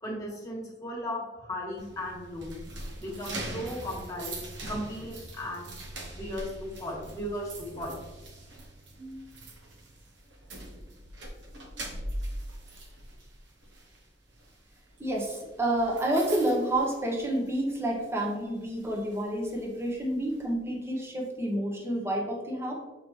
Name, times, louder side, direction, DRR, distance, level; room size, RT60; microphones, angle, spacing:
voice 1, 0.0-2.6 3.0-5.7 6.1-8.0, left 1 dB, 20° left, -2 dB, 1.6 m, -36 dB
sound 1, 1.8-17.7 18.0-18.3 18.8-20.4, right 1 dB, 70° right, 1.1 m, -42 dB
voice 2, 15.0-22.7, right 1 dB, 15° right, 0 dB, 1.0 m, -29 dB
7.0 x 4.3 x 3.2 m, 1.2 s
head